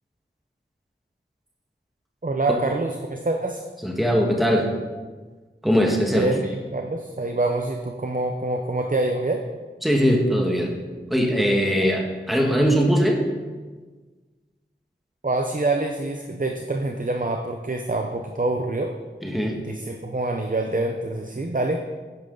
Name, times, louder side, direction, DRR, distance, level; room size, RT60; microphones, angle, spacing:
voice 1, 2.2-3.6 6.1-9.4 15.2-18.9 19.5-21.8, right 2 dB, 45° right, 4 dB, 0.8 m, -26 dB
voice 2, 3.8-4.7 5.6-6.3 9.8-10.8 11.1-13.2 19.2-19.5, equal, ahead, 1 dB, 1.5 m, -20 dB
10.5 x 9.5 x 3.9 m, 1.4 s
wide cardioid pair, 45°, 19 cm